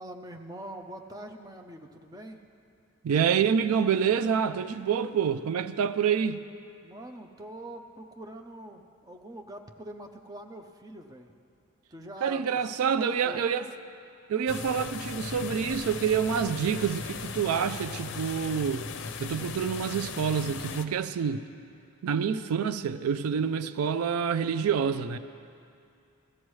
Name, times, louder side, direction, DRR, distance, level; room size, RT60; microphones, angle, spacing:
voice 1, 0.0-2.4 6.8-11.3 11.9-13.7, right 1 dB, 15° right, 3 dB, 0.6 m, -44 dB
voice 2, 3.0-6.4 12.2-13.7 14.3-18.9 19.2-21.4 22.0-25.2, right 7 dB, 85° right, 13 dB, 0.4 m, -27 dB
sound 1, 14.5-20.9, left 4 dB, 55° left, 0.6 m, -38 dB
17.0 x 13.0 x 3.2 m, 2.5 s
head